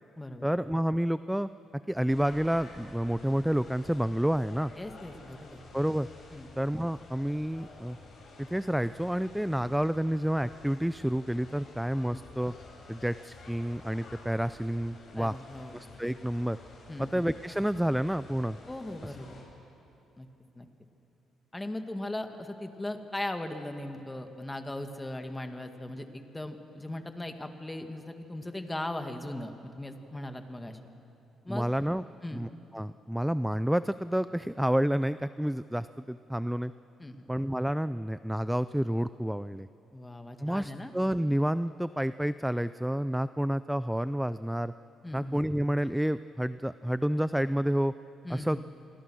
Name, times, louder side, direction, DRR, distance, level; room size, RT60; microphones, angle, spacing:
voice 1, 0.4-1.5 1.9-4.7 5.7-6.1 6.6-8.0 8.4-12.5 12.9-15.4 15.7-16.6 17.0-18.6 19.0-19.1 31.5-32.0 32.3-36.7 37.3-39.7 40.4-44.7 45.1-47.9 48.3-48.6, equal, 5° right, 14 dB, 0.4 m, -29 dB
sound 1, 2.1-19.4, left 3 dB, 55° left, 7.6 m, -51 dB
voice 2, 4.8-5.6 6.3-6.5 12.1-12.2 15.2-15.7 16.9-17.2 18.7-19.4 20.2-20.3 20.6-20.7 21.5-30.8 31.4-31.7 32.2-32.4 37.0-37.3 39.9-40.9 45.0-45.4 48.2-48.6, left 1 dB, 15° left, 6 dB, 2.0 m, -38 dB
28.0 x 23.5 x 6.3 m, 3.0 s
cardioid pair, 90°, 0 cm